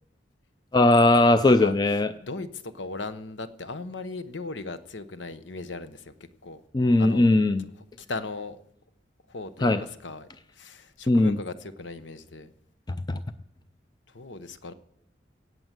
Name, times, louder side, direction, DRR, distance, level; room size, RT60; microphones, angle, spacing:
voice 1, 0.7-2.1 6.7-7.6 9.6-9.8 11.1-11.4 13.1-13.2, left 2 dB, 25° left, 0.4 m, -19 dB
voice 2, 1.4-1.7 2.2-6.1 6.4-6.6 7.0-7.2 8.0-8.6 9.3-10.3 10.5-12.5 14.1-14.7, left 3 dB, 85° left, 1.1 m, -37 dB
17.5 x 7.9 x 7.5 m
head